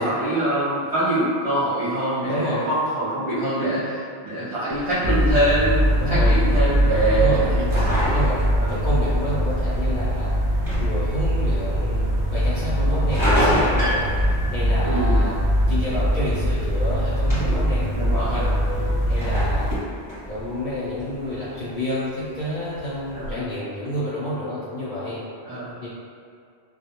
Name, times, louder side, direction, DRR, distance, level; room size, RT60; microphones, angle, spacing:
voice 1, 0.0-5.8 6.1-8.1 8.5-8.7 14.8-15.3 17.5-18.4 18.8-19.0 23.1-23.5 25.4-25.8, right 1 dB, 45° right, -13 dB, 0.4 m, -24 dB
voice 2, 2.2-2.7 3.8-3.9 6.0-6.4 7.1-7.5 8.1-8.4 8.7-10.3 10.8-15.3 15.7-18.6 19.1-19.7 20.3-25.2 25.8-25.9, equal, 55° left, -11 dB, 0.6 m, -29 dB
sound 1, 4.7-23.3, left 1 dB, ahead, 1.0 m, -32 dB
sound 2, 5.0-19.8, equal, 75° right, 0.9 m, -22 dB
2.1 x 2.1 x 2.8 m, 2.3 s
omnidirectional pair, 1.2 m